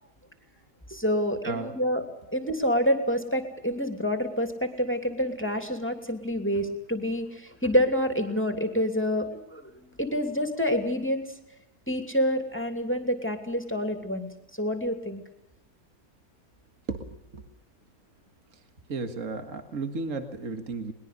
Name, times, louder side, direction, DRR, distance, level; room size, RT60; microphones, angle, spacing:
voice 1, 0.9-2.0 2.3-11.3 11.9-14.3 14.6-15.2, equal, 5° left, 6 dB, 2.8 m, -27 dB
voice 2, 18.9-20.9, right 4 dB, 55° right, 7 dB, 2.1 m, -33 dB
22.0 x 21.0 x 6.8 m, 0.85 s
omnidirectional pair, 1.6 m